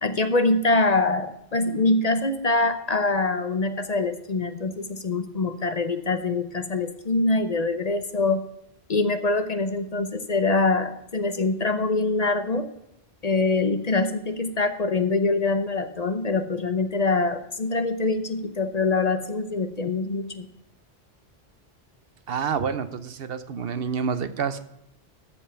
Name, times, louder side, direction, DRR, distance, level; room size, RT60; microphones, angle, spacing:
voice 1, 0.0-8.4 8.9-12.7 13.2-20.5, left 3 dB, 40° left, 9 dB, 0.8 m, -24 dB
voice 2, 22.3-24.6, right 6 dB, 65° right, 12 dB, 0.9 m, -28 dB
13.5 x 5.4 x 5.7 m, 0.81 s
omnidirectional pair, 1.1 m